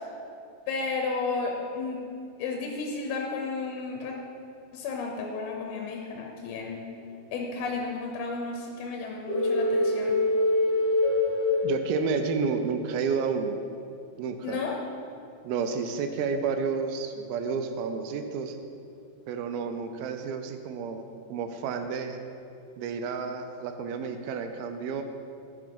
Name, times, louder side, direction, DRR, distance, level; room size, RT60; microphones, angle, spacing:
voice 1, 0.7-2.0 2.4-4.2 4.7-6.9 7.3-10.2 14.4-14.8, left 4 dB, 90° left, 1 dB, 2.7 m, -33 dB
sound 1, 9.3-12.5, left 2 dB, 35° right, 2.0 m, -25 dB
voice 2, 11.6-13.6 14.2-14.6 15.4-18.6 19.3-22.2 22.8-25.0, right 5 dB, 90° right, 7 dB, 2.4 m, -30 dB
11.0 x 6.2 x 5.3 m, 2.5 s
omnidirectional pair, 4.2 m